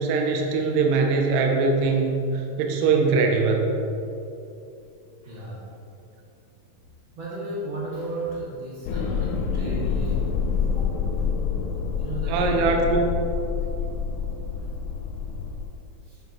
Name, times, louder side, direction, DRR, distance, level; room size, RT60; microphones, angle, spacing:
voice 1, 0.0-2.1 2.6-3.7 12.3-13.1, right 4 dB, 75° right, 2 dB, 2.3 m, -21 dB
voice 2, 5.2-5.7 7.2-10.3 10.6-10.7 12.0-13.0 16.0-16.2, right 1 dB, 45° right, -7 dB, 1.7 m, -34 dB
sound 1, 8.9-15.6, left 6 dB, 80° left, 1.9 m, -27 dB
9.6 x 5.3 x 3.6 m, 2.8 s
omnidirectional pair, 4.1 m